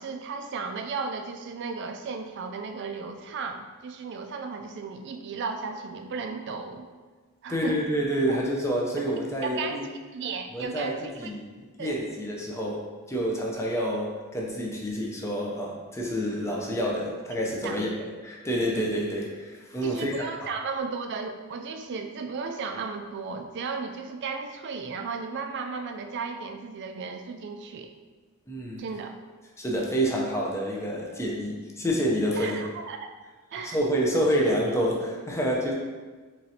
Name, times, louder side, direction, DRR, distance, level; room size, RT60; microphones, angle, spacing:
voice 1, 0.0-6.9 7.4-7.9 8.3-8.4 9.4-9.9 10.1-11.3 11.8-11.9 17.6-17.8 19.8-27.9 28.8-29.2 32.4-33.2 33.5-33.8, right 4 dB, 55° right, 5 dB, 0.4 m, -35 dB
voice 2, 7.5-9.8 10.5-11.5 11.8-12.8 13.1-17.9 18.2-20.2 28.5-28.8 29.6-32.6 33.6-35.7, equal, 15° left, -2 dB, 0.5 m, -28 dB
4.0 x 3.1 x 2.8 m, 1.4 s
head